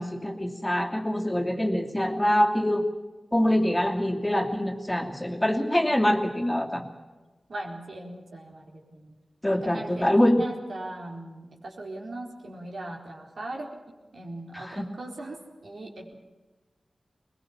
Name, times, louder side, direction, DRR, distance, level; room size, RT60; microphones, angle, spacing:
voice 1, 0.0-2.8 3.3-6.8 9.4-10.4 14.5-14.9, left 1 dB, 15° left, 2 dB, 2.7 m, -24 dB
voice 2, 7.5-9.1 9.5-13.7 14.1-16.1, right 2 dB, 75° right, 1 dB, 4.3 m, -39 dB
21.5 x 21.0 x 7.3 m, 1.2 s
wide cardioid pair, 70°, 0 cm